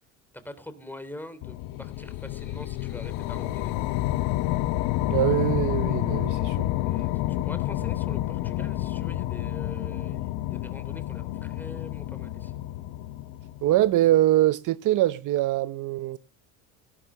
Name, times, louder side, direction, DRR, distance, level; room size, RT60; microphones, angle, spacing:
voice 1, 0.3-3.7 6.9-12.5, left 1 dB, 5° left, 3.2 m, -44 dB
sound 1, 1.4-13.9, left 15 dB, 65° left, 1.1 m, -29 dB
voice 2, 5.1-6.7 13.6-16.2, right 14 dB, 50° right, 0.8 m, -23 dB
17.5 x 11.5 x 6.7 m
supercardioid pair, 115°, 41 cm